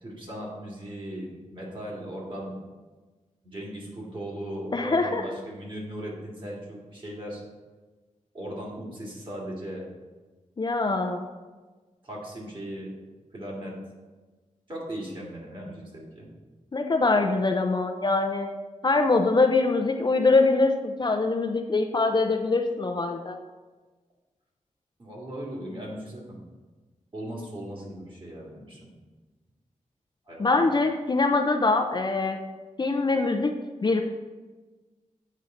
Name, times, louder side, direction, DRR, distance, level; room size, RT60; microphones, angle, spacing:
voice 1, 0.0-2.6 3.4-7.4 8.3-9.9 12.0-12.9 13.3-13.7 14.7-16.3 25.0-26.4 27.1-28.9 30.3-30.7, right 1 dB, 40° right, -4 dB, 2.1 m, -38 dB
voice 2, 4.7-5.2 10.6-11.3 16.7-18.5 18.8-23.4 30.4-32.4 32.8-33.5 33.8-34.0, left 3 dB, 35° left, 4 dB, 0.5 m, -23 dB
8.2 x 5.6 x 3.8 m, 1.3 s
wide cardioid pair, 135°, 13 cm